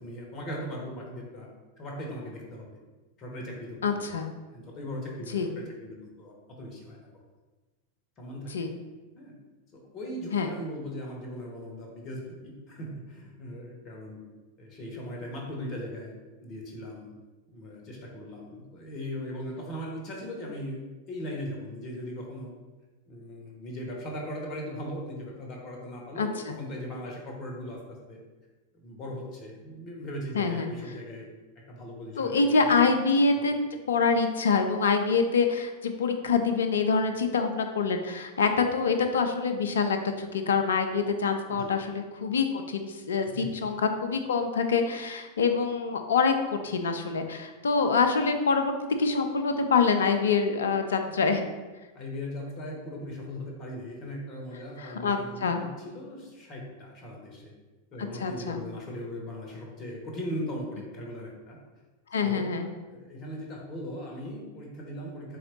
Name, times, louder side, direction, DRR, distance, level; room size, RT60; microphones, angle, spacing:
voice 1, 0.0-1.5 1.8-2.7 3.2-4.0 4.5-7.1 8.2-8.7 9.1-9.3 9.7-12.2 12.7-14.2 14.6-16.2 16.4-17.1 17.5-22.5 23.1-28.2 28.8-31.3 31.7-32.3 32.6-32.9 33.4-33.5 41.5-41.7 43.2-43.6 51.0-51.2 51.9-57.5 57.9-61.6 62.2-62.5 62.9-65.4, equal, 35° left, -1 dB, 1.0 m, -39 dB
voice 2, 3.8-4.3 5.3-5.5 8.5-8.7 10.3-10.5 26.2-26.6 30.3-30.7 32.2-33.6 33.9-51.4 54.8-55.6 58.0-58.6 62.1-62.7, left 5 dB, 65° left, 6 dB, 0.4 m, -26 dB
3.9 x 2.9 x 3.1 m, 1.2 s
figure-of-eight pair, 90°, 0 cm